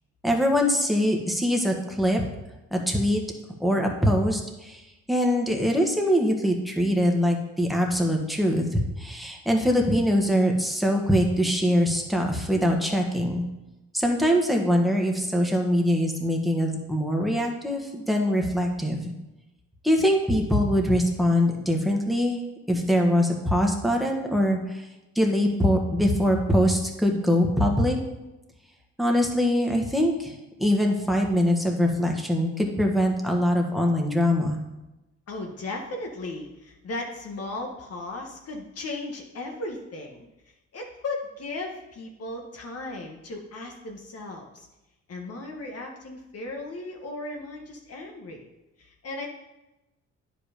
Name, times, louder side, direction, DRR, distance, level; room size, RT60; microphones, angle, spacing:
voice 1, 0.2-2.2 2.7-3.2 3.6-4.8 5.1-13.4 13.9-19.1 19.8-22.4 22.7-24.9 25.2-28.0 29.0-34.6, equal, ahead, 1 dB, 1.6 m, -23 dB
voice 2, 35.3-40.2 40.7-44.7 45.1-48.5 48.8-49.3, left 2 dB, 55° left, 1 dB, 1.6 m, -36 dB
9.6 x 5.4 x 5.1 m, 1.0 s
cardioid pair, 90°, 30 cm